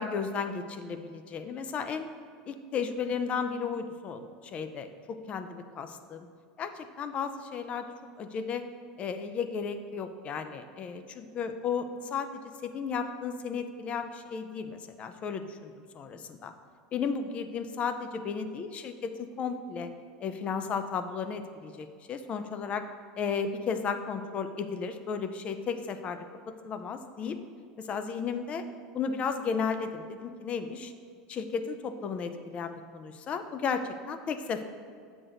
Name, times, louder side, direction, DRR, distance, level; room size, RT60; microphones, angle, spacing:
voice 1, 0.0-2.1 2.5-6.3 6.6-7.9 8.2-8.6 9.0-16.5 16.9-19.9 20.2-22.8 23.2-26.2 26.6-27.4 27.8-28.6 28.9-30.9 31.3-34.6, left 6 dB, 30° left, 9 dB, 0.5 m, -34 dB
8.0 x 6.0 x 3.9 m, 2.2 s
supercardioid pair, 135°, 4 cm